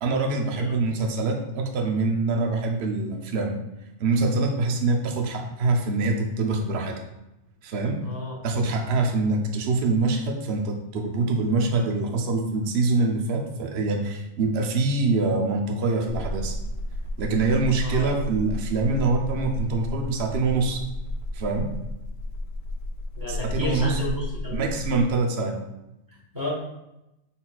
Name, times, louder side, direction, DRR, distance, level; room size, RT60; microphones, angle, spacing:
voice 1, 0.0-3.5 4.0-7.0 7.6-8.0 8.4-16.5 17.2-20.8 21.3-21.7 23.3-24.0 24.5-25.6, right 3 dB, 55° right, 3 dB, 0.8 m, -24 dB
voice 2, 8.0-8.4 17.8-18.2 23.2-24.6 26.3-26.5, left 1 dB, 15° right, -4 dB, 1.3 m, -31 dB
sound 1, 16.1-25.1, left 1 dB, 65° left, 0.7 m, -32 dB
5.6 x 4.1 x 2.3 m, 0.90 s
omnidirectional pair, 1.4 m